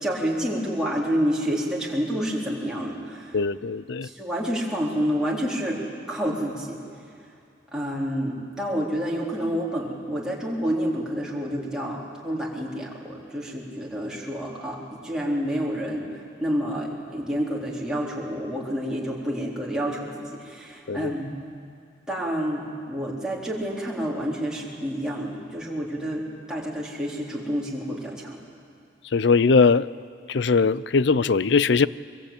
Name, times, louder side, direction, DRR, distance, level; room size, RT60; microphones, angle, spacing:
voice 1, 0.0-3.4 4.0-5.8 6.1-6.8 7.7-16.1 16.4-21.3 22.1-28.4, equal, 5° right, -5 dB, 3.9 m, -29 dB
voice 2, 3.3-4.1 20.9-21.1 29.1-29.9 30.3-31.9, left 4 dB, 70° left, 18 dB, 0.5 m, -20 dB
23.5 x 23.0 x 8.7 m, 2.4 s
head